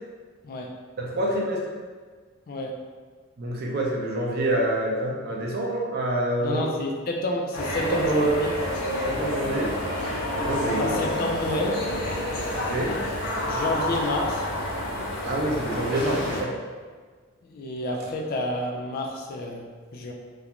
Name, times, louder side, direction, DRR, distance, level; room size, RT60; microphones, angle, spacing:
voice 1, 1.0-1.6 3.4-6.6 7.9-8.4 9.0-9.8 10.4-11.0 12.6-13.0 15.2-16.5, right 1 dB, 50° right, -2 dB, 0.5 m, -26 dB
voice 2, 6.4-8.5 10.8-11.8 13.5-14.5 17.4-19.7 19.9-20.1, left 1 dB, 45° left, 1 dB, 0.3 m, -29 dB
sound 1, 7.5-16.4, left 1 dB, 85° left, 0.7 m, -29 dB
2.4 x 2.1 x 2.9 m, 1.5 s
head